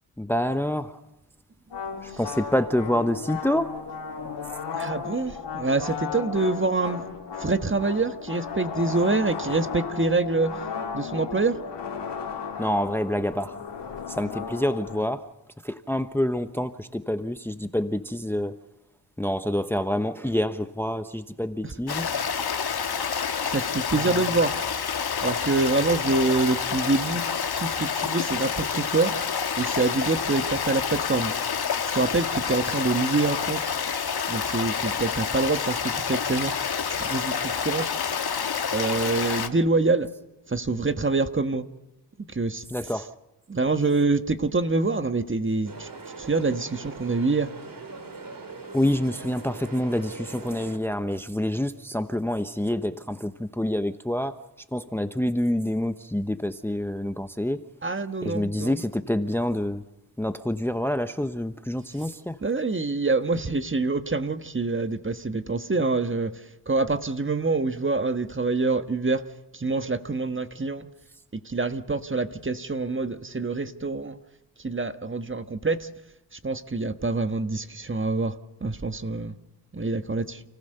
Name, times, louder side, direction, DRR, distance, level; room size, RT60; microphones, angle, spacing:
voice 1, 0.2-1.0 2.0-3.8 12.6-13.6 14.1-15.3 15.6-18.6 19.2-22.1 23.9-24.4 27.1-27.4 42.7-43.1 48.7-54.4 54.7-57.6 58.2-59.8 60.2-62.4, left 1 dB, 5° left, 10 dB, 1.0 m, -27 dB
sound 1, 1.7-15.0, left 6 dB, 80° left, 3.6 m, -35 dB
voice 2, 4.7-7.0 7.4-10.6 10.9-11.6 21.6-21.7 23.4-24.6 25.2-27.2 27.6-29.2 29.6-31.3 31.9-33.7 34.3-36.6 37.0-38.0 38.7-40.1 40.5-41.6 42.3-42.9 43.5-45.9 46.2-47.5 57.8-58.8 62.4-69.3 69.5-70.9 71.3-74.2 74.6-75.9 76.3-79.3 79.7-80.4, right 3 dB, 30° right, 9 dB, 1.5 m, -26 dB
Stream, 21.9-39.5, left 6 dB, 65° left, 1.6 m, -28 dB
sound 2, 45.7-50.8, right 4 dB, 50° right, 3.2 m, -41 dB
29.5 x 15.5 x 6.7 m, 0.98 s
cardioid pair, 55°, 42 cm